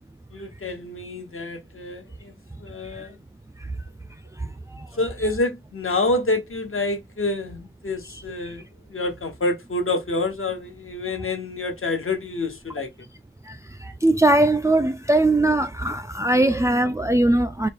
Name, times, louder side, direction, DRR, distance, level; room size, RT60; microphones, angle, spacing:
voice 1, 0.3-3.2 5.0-8.6 8.9-12.9, left 2 dB, 80° left, 1.1 m, -27 dB
voice 2, 14.0-17.7, right 1 dB, 15° right, 0.3 m, -20 dB
4.2 x 2.1 x 3.4 m
wide cardioid pair, 65°, 21 cm